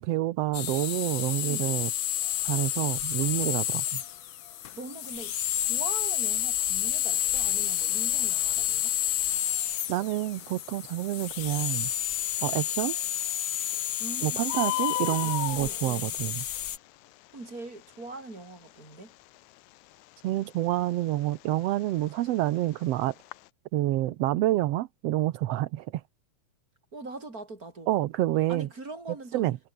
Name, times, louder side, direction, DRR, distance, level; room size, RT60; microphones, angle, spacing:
voice 1, 0.0-1.9 2.4-4.0 9.9-11.9 12.4-12.9 14.2-16.4 20.2-23.1 23.7-26.0 27.9-28.7 29.3-29.6, right 15 dB, 70° right, 1.7 m, -28 dB
sound 1, 0.5-16.8, left 11 dB, 60° left, 1.3 m, -30 dB
voice 2, 1.4-1.8 4.7-8.9 14.0-16.2 17.3-19.1 26.9-27.9 28.5-29.5, right 2 dB, 30° right, 5.9 m, -42 dB
Bird, 7.1-23.5, left 19 dB, 80° left, 2.0 m, -39 dB
omnidirectional pair, 3.3 m